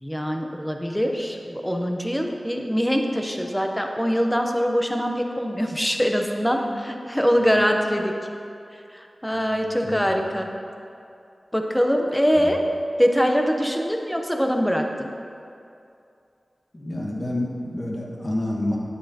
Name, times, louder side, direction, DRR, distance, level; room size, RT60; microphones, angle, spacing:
voice 1, 0.0-8.1 8.7-10.5 11.5-12.6 13.0-15.1, equal, 5° left, 3 dB, 0.7 m, -23 dB
voice 2, 9.3-10.1 12.4-12.5 16.7-18.8, left 1 dB, 40° left, -3 dB, 1.5 m, -29 dB
9.8 x 8.3 x 2.9 m, 2.5 s
wide cardioid pair, 75°, 0 cm